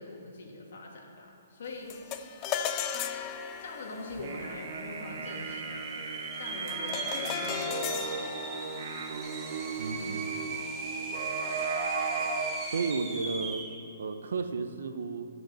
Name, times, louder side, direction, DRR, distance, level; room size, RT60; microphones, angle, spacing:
voice 1, 0.0-1.9 3.6-5.7 6.4-8.4, left 2 dB, 60° left, 0 dB, 2.0 m, -43 dB
sound 1, 1.9-11.4, left 9 dB, 20° left, 0.4 m, -38 dB
sound 2, 2.8-2.9 3.1-3.7 4.2-4.3 5.0-13.8, right 4 dB, 15° right, 0.7 m, -38 dB
sound 3, 4.1-12.6, right 4 dB, 50° right, 1.0 m, -36 dB
voice 2, 9.8-10.4 12.7-13.6 14.0-15.3, right 4 dB, 80° right, 8 dB, 0.8 m, -33 dB
12.0 x 5.2 x 7.4 m, 2.7 s
hypercardioid pair, 165°, 0 cm